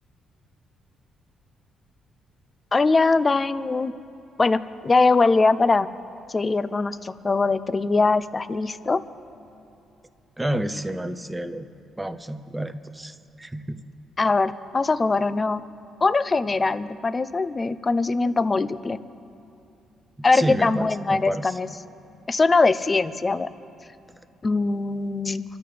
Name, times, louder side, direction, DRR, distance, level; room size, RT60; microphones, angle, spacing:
voice 1, 2.7-3.9 4.4-5.9 6.3-9.0 14.2-15.6 16.0-19.0 20.2-21.7 22.3-23.5 24.4-25.4, left 3 dB, 30° left, 13 dB, 0.6 m, -22 dB
voice 2, 10.4-11.7 12.0-13.8 20.3-21.6, right 1 dB, 10° right, 11 dB, 0.7 m, -30 dB
26.0 x 13.0 x 3.4 m, 2.7 s
cardioid pair, 90°, 0 cm